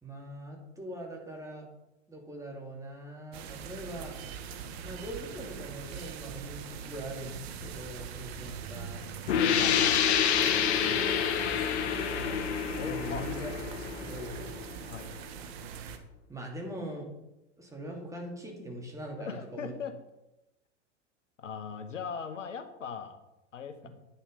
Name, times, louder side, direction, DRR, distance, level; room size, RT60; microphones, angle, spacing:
voice 1, 0.0-1.7 2.1-4.2 4.8-9.0 9.4-10.0 12.8-14.6 16.3-17.1 17.6-19.7 23.8-23.9, right 1 dB, 10° right, 0 dB, 2.7 m, -42 dB
sound 1, 3.3-16.0, right 6 dB, 55° right, 1.4 m, -42 dB
sound 2, 9.3-14.7, left 8 dB, 65° left, 1.4 m, -28 dB
voice 2, 9.5-10.3 12.8-13.3 14.9-15.1 19.2-19.9 21.4-23.2 23.5-23.9, left 6 dB, 85° left, 8 dB, 1.2 m, -39 dB
9.6 x 7.2 x 5.2 m, 0.91 s
hypercardioid pair, 100°, 37 cm